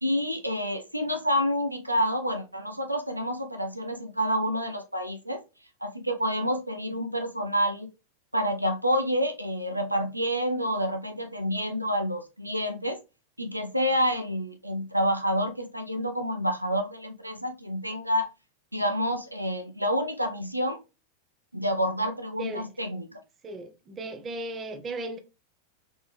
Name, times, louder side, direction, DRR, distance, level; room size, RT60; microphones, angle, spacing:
voice 1, 0.0-5.4 5.8-7.9 8.3-13.0 13.4-18.3 18.7-20.8 21.5-23.1, equal, 85° right, 0.6 m, -28 dB
voice 2, 23.4-25.2, right 2 dB, 25° right, 0.9 m, -36 dB
4.0 x 3.9 x 3.3 m
figure-of-eight pair, 90°, 0 cm